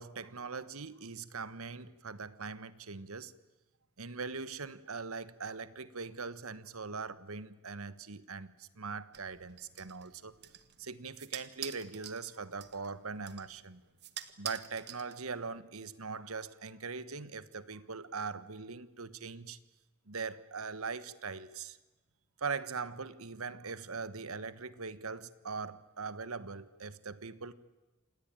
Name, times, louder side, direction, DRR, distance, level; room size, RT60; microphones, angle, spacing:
voice 1, 0.0-3.3 4.0-10.3 10.8-13.8 14.4-19.6 20.1-21.8 22.4-27.5, right 4 dB, 75° right, 15 dB, 1.3 m, -41 dB
sound 1, 9.1-15.6, right 10 dB, 50° right, 1.5 m, -48 dB
27.5 x 19.0 x 9.0 m, 1.2 s
head